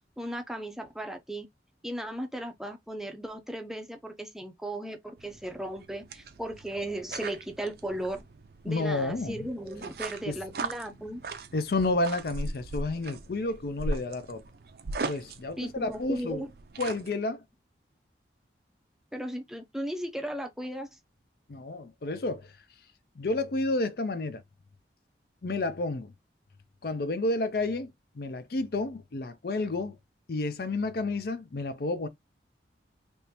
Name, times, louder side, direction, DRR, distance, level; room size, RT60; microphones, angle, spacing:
voice 1, 0.2-1.5 1.8-8.2 8.6-11.2 15.6-16.5 19.1-21.0, right 1 dB, 5° right, 0.5 m, -36 dB
sound 1, 5.2-17.1, right 2 dB, 55° right, 0.5 m, -39 dB
voice 2, 8.7-9.5 10.3-10.4 11.5-14.4 15.1-16.4 16.8-17.4 21.5-22.5 23.2-24.4 25.4-26.1 26.8-30.0 30.3-32.1, left 2 dB, 60° left, 0.5 m, -30 dB
3.5 x 2.6 x 2.8 m
head